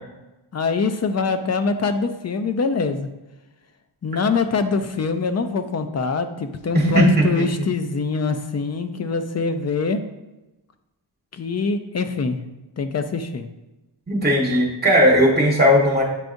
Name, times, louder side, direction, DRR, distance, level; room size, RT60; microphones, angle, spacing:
voice 1, 0.5-3.1 4.0-10.0 11.3-12.4 12.8-13.5, left 4 dB, 35° left, 8 dB, 0.4 m, -24 dB
voice 2, 6.7-7.2 14.1-16.0, equal, 20° right, -3 dB, 1.6 m, -17 dB
9.0 x 4.6 x 2.6 m, 1.0 s
wide cardioid pair, 165°, 48 cm